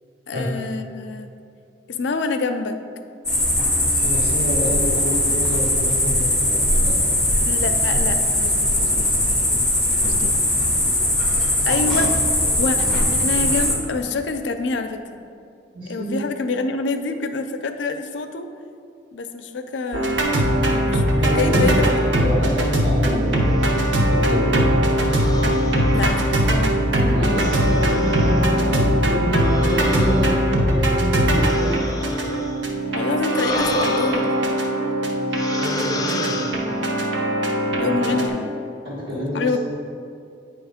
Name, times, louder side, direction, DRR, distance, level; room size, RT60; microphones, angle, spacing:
voice 1, 0.3-1.3 1.9-2.8 7.4-9.1 10.0-10.4 11.6-12.2 12.6-15.0 15.9-18.5 19.1-21.9 22.1-22.6 25.9-26.6 32.9-34.4 37.8-38.5 39.3-39.6, left 3 dB, 85° left, 7 dB, 0.4 m, -27 dB
sound 1, 3.2-13.7, left 1 dB, 5° left, 1.1 m, -20 dB
voice 2, 4.0-7.1 15.7-16.2 21.1-23.4 23.7-24.5 27.1-32.4 35.6-36.6 37.8-38.3 38.8-39.5, equal, 65° right, -12 dB, 1.5 m, -28 dB
sound 2, 19.9-38.3, right 1 dB, 85° right, 0.9 m, -20 dB
sound 3, 23.5-24.2 25.1-26.7 27.3-28.6 29.3-32.7 33.2-34.9 35.3-37.1, left 2 dB, 20° left, 0.4 m, -32 dB
8.8 x 3.0 x 4.9 m, 2.4 s
head